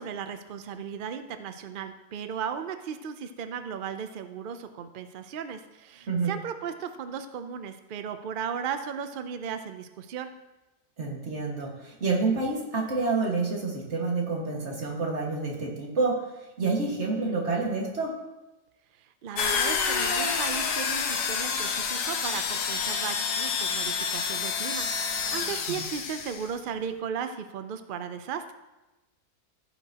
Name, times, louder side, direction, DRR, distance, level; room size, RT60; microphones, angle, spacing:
voice 1, 0.0-10.3 19.0-28.5, right 7 dB, 80° right, 9 dB, 0.4 m, -36 dB
voice 2, 11.0-18.2 25.7-25.8, right 3 dB, 45° right, -1 dB, 2.0 m, -28 dB
sound 1, 19.4-26.5, left 6 dB, 75° left, 1.4 m, -28 dB
15.0 x 7.0 x 2.9 m, 1.0 s
omnidirectional pair, 1.7 m